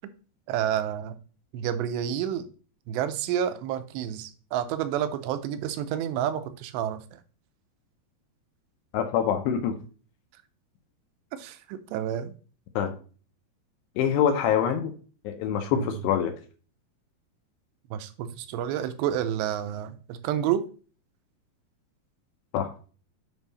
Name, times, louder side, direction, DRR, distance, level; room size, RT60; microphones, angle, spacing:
voice 1, 0.5-1.2 1.5-2.5 2.9-7.0 11.3-12.3 15.7-15.9 17.9-20.6, right 10 dB, 90° right, 10 dB, 2.9 m, -29 dB
voice 2, 8.9-9.7 12.8-12.9 14.0-14.9 15.2-16.3 22.5-22.7, left 8 dB, 80° left, 5 dB, 2.9 m, -25 dB
8.0 x 5.6 x 4.1 m, 0.39 s
omnidirectional pair, 4.9 m